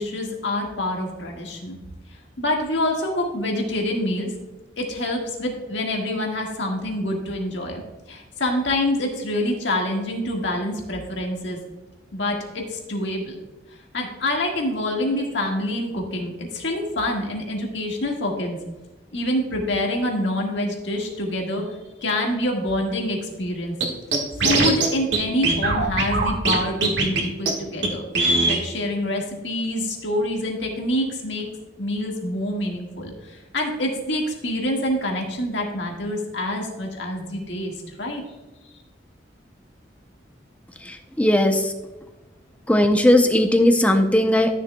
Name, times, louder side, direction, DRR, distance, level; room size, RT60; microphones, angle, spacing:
voice 1, 0.0-1.8 2.4-4.3 4.8-7.8 8.1-11.6 12.1-13.4 13.9-18.6 19.1-23.8 24.4-28.0 28.4-31.5 31.8-38.2, left 1 dB, 80° left, 1 dB, 1.7 m, -26 dB
Scratching (performance technique), 23.8-23.9 24.1-24.9 25.1-25.2 25.4-26.6 26.8-27.2 27.5-27.6 27.8-27.9 28.1-28.6, right 3 dB, 80° right, 1.6 m, -20 dB
voice 2, 40.8-41.7 42.7-44.6, left 1 dB, 10° left, 6 dB, 0.6 m, -18 dB
12.5 x 6.7 x 2.2 m, 1.1 s
head